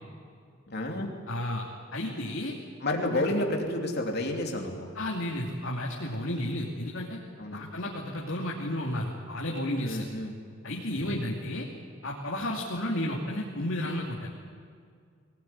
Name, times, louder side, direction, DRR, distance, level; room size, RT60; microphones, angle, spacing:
voice 1, 0.7-1.1 2.8-4.9 7.4-7.7 9.8-10.4 10.8-11.3, left 1 dB, 55° left, 1 dB, 3.0 m, -31 dB
voice 2, 1.3-1.6 1.9-2.5 4.9-7.2 7.5-10.0 10.6-11.7 12.0-14.3, left 1 dB, 75° left, -2 dB, 2.7 m, -32 dB
23.0 x 17.5 x 9.9 m, 2.1 s
head